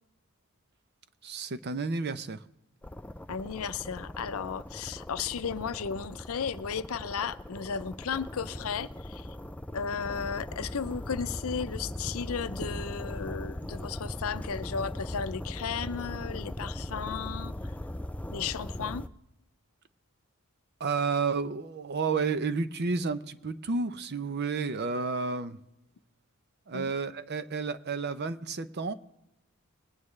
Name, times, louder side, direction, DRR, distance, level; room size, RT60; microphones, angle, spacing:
voice 1, 1.2-2.4 20.8-25.6 26.7-28.9, right 4 dB, 50° right, 0.6 m, -31 dB
sound 1, 2.8-19.1, left 1 dB, 5° left, 0.3 m, -39 dB
voice 2, 3.3-9.3 9.7-17.7 18.3-19.0 26.7-26.9, left 6 dB, 70° left, 0.5 m, -34 dB
20.5 x 9.3 x 3.2 m
head